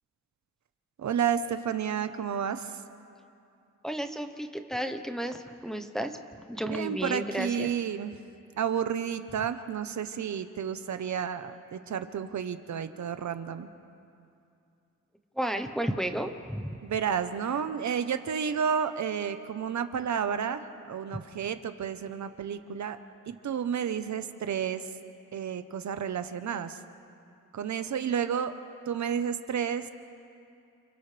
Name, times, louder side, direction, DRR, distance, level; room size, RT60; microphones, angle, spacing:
voice 1, 1.0-2.8 6.7-8.1 8.6-13.7 16.8-23.0 23.3-24.9 25.3-26.8 27.5-28.5 28.9-29.9, right 8 dB, 70° right, 9 dB, 1.0 m, -31 dB
voice 2, 3.8-6.2 6.5-7.7 15.4-16.7, right 1 dB, ahead, 5 dB, 1.0 m, -32 dB
29.5 x 29.0 x 3.4 m, 2.5 s
wide cardioid pair, 140°, 30 cm